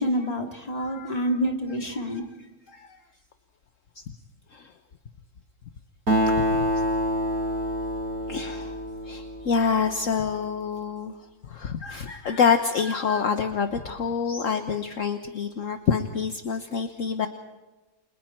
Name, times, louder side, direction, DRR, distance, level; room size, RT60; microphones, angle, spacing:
voice 1, 0.0-2.2, equal, 25° left, 2 dB, 2.8 m, -27 dB
voice 2, 1.9-3.0 3.9-4.0 4.5-4.7 6.3-6.7 8.3-8.8 9.0-11.1 11.4-17.3, left 6 dB, 60° left, 7 dB, 1.4 m, -27 dB
Acoustic guitar, 6.1-9.9, equal, 65° right, 3.2 m, -26 dB
29.5 x 26.0 x 4.5 m, 1.2 s
omnidirectional pair, 1.6 m